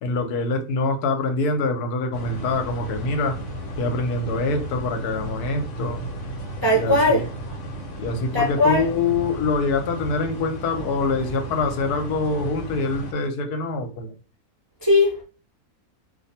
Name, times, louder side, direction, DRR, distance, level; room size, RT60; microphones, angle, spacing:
voice 1, 0.0-3.4 3.8-6.0 6.7-7.3 8.0-14.1, left 3 dB, 85° left, 1.2 m, -25 dB
sound 1, 2.1-13.1, right 1 dB, 60° left, 1.1 m, -34 dB
voice 2, 6.6-7.2 8.3-8.8 14.8-15.2, left 1 dB, 20° right, 0.5 m, -18 dB
2.6 x 2.5 x 4.1 m
omnidirectional pair, 1.6 m